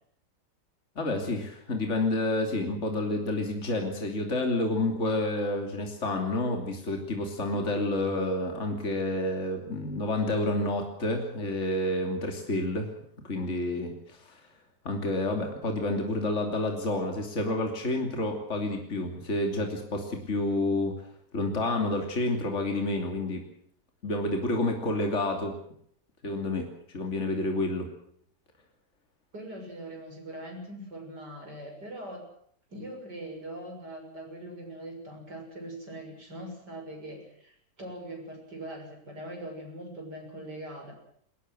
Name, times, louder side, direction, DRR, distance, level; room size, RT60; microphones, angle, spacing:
voice 1, 0.9-12.9 13.2-14.4 14.8-21.0 21.3-23.4 24.0-25.5 26.2-27.9, left 2 dB, 40° left, 3 dB, 3.3 m, -29 dB
voice 2, 29.3-32.3 32.7-40.9, right 1 dB, 75° right, 2 dB, 7.4 m, -41 dB
21.5 x 20.0 x 7.8 m, 0.65 s
omnidirectional pair, 1.8 m